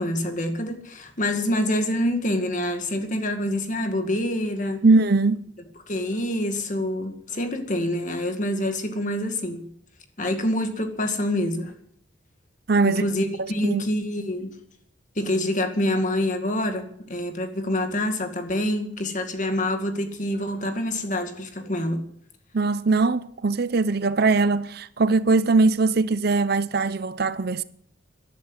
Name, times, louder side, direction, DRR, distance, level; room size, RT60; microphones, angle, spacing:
voice 1, 0.0-4.8 5.9-9.6 10.2-11.7 12.8-14.5 15.2-22.0, left 1 dB, 40° left, 2.0 m, -26 dB
voice 2, 4.8-5.4 12.7-13.0 13.4-13.8 22.5-27.6, right 3 dB, 50° right, 0.6 m, -21 dB
14.5 x 11.5 x 8.0 m
head